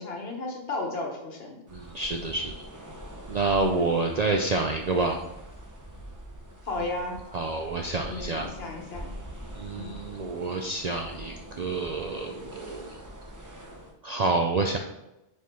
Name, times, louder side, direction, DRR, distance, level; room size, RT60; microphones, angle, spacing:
voice 1, 0.0-1.6 3.6-3.9 6.6-7.1 8.0-9.1 9.8-10.0, left 2 dB, 60° left, 1 dB, 1.3 m, -34 dB
sound 1, 1.7-13.9, right 1 dB, 20° right, 0.8 m, -44 dB
voice 2, 1.7-2.5 3.3-5.2 7.3-8.5 9.6-12.9 14.0-14.8, right 3 dB, 55° right, 3 dB, 0.4 m, -28 dB
4.7 x 4.4 x 5.4 m, 0.92 s
omnidirectional pair, 1.1 m